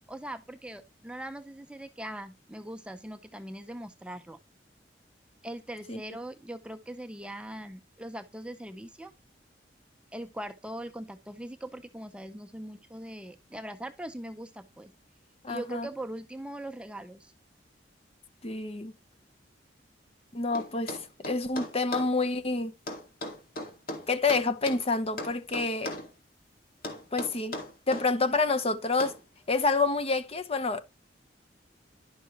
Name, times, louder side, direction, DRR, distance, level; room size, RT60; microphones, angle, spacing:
voice 1, 0.1-4.4 5.4-9.1 10.1-14.9 15.5-17.3 28.3-28.4, right 1 dB, 5° right, 0.5 m, -41 dB
voice 2, 15.4-15.9 18.4-18.9 20.3-21.0 21.3-22.7 24.1-25.9 27.1-27.6 27.9-29.2 29.5-30.8, left 3 dB, 35° left, 0.8 m, -28 dB
sound 1, 20.5-22.1 22.9-24.8 25.2-26.1 26.8-28.1 29.0-29.2, left 1 dB, 55° left, 2.2 m, -37 dB
11.0 x 6.2 x 3.0 m
head